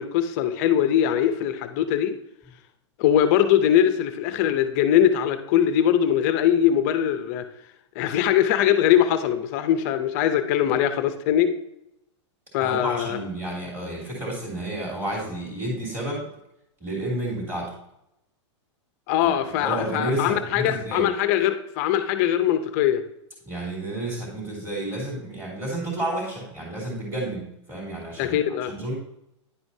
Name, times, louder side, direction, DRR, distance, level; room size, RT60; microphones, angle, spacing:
voice 1, 0.0-2.1 3.0-7.4 8.0-11.5 12.5-13.2 19.1-23.0 28.2-28.7, left 10 dB, 35° left, 9 dB, 0.7 m, -21 dB
voice 2, 12.6-16.3 16.8-17.7 19.2-21.1 23.4-28.4 28.7-28.9, right 1 dB, 15° right, -5 dB, 2.9 m, -31 dB
9.9 x 7.7 x 2.8 m, 0.79 s
supercardioid pair, 170°, 16 cm